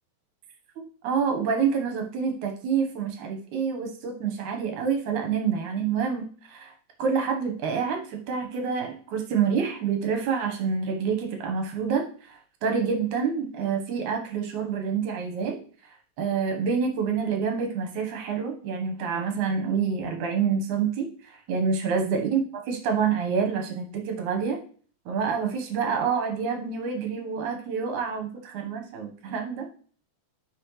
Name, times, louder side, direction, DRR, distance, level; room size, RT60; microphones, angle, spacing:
voice 1, 0.8-6.7 7.0-12.1 12.6-15.6 16.2-21.1 21.5-24.6 25.1-29.7, right 6 dB, 65° right, 2 dB, 2.5 m, -27 dB
9.8 x 6.0 x 3.3 m, 0.43 s
omnidirectional pair, 4.1 m